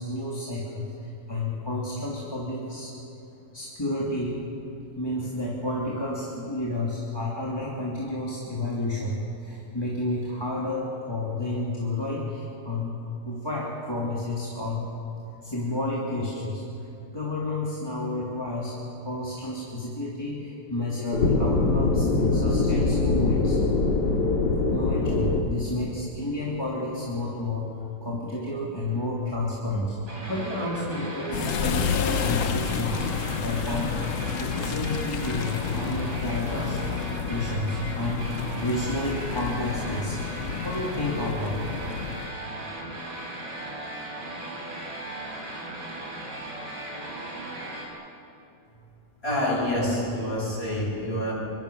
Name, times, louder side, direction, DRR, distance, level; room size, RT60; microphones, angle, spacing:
voice 1, 0.0-2.9 3.5-4.4 5.0-12.9 13.2-14.8 15.4-18.8 19.0-23.6 24.7-27.7 28.0-40.2 40.6-41.6, left 1 dB, 15° left, -5 dB, 3.1 m, -31 dB
sound 1, 21.1-25.4, left 3 dB, 85° left, 2.6 m, -23 dB
sound 2, 30.1-47.9, right 1 dB, 85° right, 5.2 m, -37 dB
sound 3, 31.3-42.3, left 7 dB, 55° left, 1.1 m, -30 dB
voice 2, 49.2-51.3, left 1 dB, 35° left, -4 dB, 7.6 m, -27 dB
25.0 x 24.0 x 7.1 m, 2.9 s
omnidirectional pair, 1.8 m